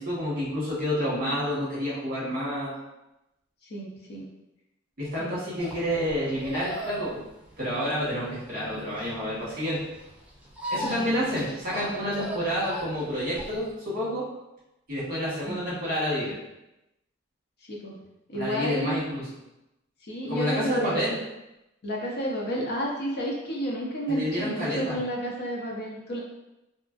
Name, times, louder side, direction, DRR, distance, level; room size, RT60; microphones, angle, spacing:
voice 1, 0.0-2.7 5.0-7.2 7.6-9.9 10.7-14.2 14.9-16.3 18.3-19.2 20.3-21.2 24.1-25.0, equal, 45° right, -7 dB, 1.1 m, -29 dB
voice 2, 3.6-4.2 5.2-5.4 10.8-11.1 15.5-15.7 17.7-17.9 18.3-19.0 20.0-21.0 21.8-26.2, equal, 55° left, -2 dB, 0.6 m, -31 dB
sound 1, 5.6-13.7, equal, 5° right, 0.4 m, -38 dB
2.7 x 2.4 x 2.4 m, 0.93 s
head